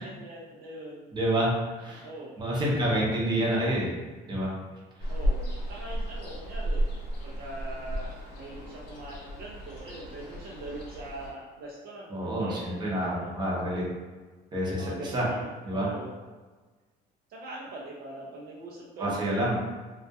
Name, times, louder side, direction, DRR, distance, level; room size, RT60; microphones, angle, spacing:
voice 1, 0.0-1.0 2.0-2.3 5.1-6.9 7.2-13.3 14.5-16.1 17.3-19.4, right 2 dB, 65° right, -4 dB, 0.5 m, -42 dB
voice 2, 1.1-2.1 2.4-3.9 4.3-4.5 12.1-13.9 14.5-15.3 15.6-15.9 19.0-19.6, right 1 dB, 25° right, -5 dB, 0.8 m, -28 dB
Ocean, 5.0-11.3, equal, 90° left, 0.6 m, -33 dB
2.3 x 2.1 x 2.7 m, 1.3 s
cardioid pair, 110°, 17 cm